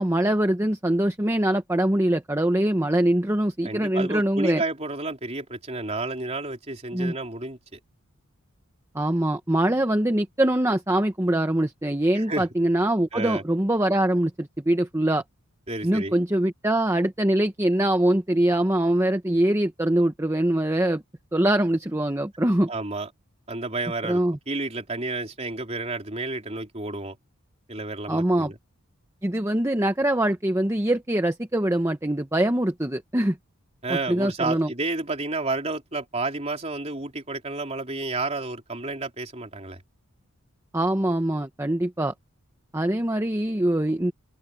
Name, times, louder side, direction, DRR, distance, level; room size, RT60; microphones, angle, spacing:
voice 1, 0.0-4.6 6.9-7.1 8.9-15.2 15.8-21.0 21.3-22.7 24.0-24.4 28.1-28.5 29.2-33.4 33.9-34.7 40.7-42.1 42.7-44.1, right 1 dB, 10° right, 0.9 m, -23 dB
voice 2, 3.6-7.8 12.2-12.4 13.1-13.4 15.7-16.1 22.7-23.1 23.5-24.2 24.5-27.2 27.7-28.6 33.8-39.8, right 2 dB, 30° right, 3.5 m, -31 dB
open air
head